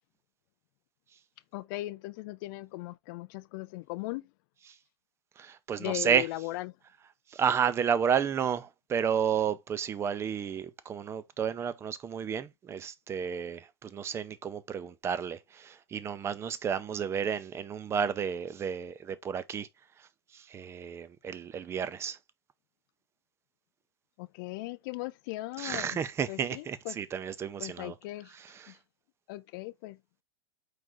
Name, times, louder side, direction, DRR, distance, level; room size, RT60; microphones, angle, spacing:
voice 1, 1.5-4.3 5.8-6.7 24.2-26.0 26.3-27.0 27.6-28.3 28.7-28.8 29.3-30.0, left 19 dB, 50° left, 0.4 m, -38 dB
voice 2, 5.4-6.3 7.3-19.7 20.3-22.2 25.6-27.9 28.6-28.7, right 7 dB, 20° right, 0.4 m, -31 dB
4.8 x 2.4 x 3.7 m
hypercardioid pair, 120°, 14 cm